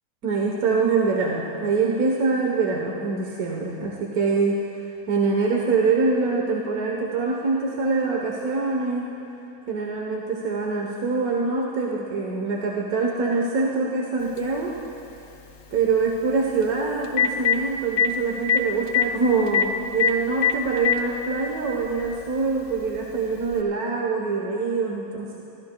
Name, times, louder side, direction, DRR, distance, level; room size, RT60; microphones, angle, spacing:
voice 1, 0.2-9.1 9.7-14.7 15.7-25.4, right 4 dB, 80° right, -2 dB, 1.6 m, -24 dB
Telephone, 14.4-14.5 16.6-16.7 17.0-17.6 18.0-18.1 18.5-18.6 18.9-19.0 19.5-19.6 20.0-20.1 20.4-21.0 22.0-22.1 23.5-23.6, left 8 dB, 70° left, 1.4 m, -19 dB
24.5 x 15.5 x 2.2 m, 2.7 s
omnidirectional pair, 1.5 m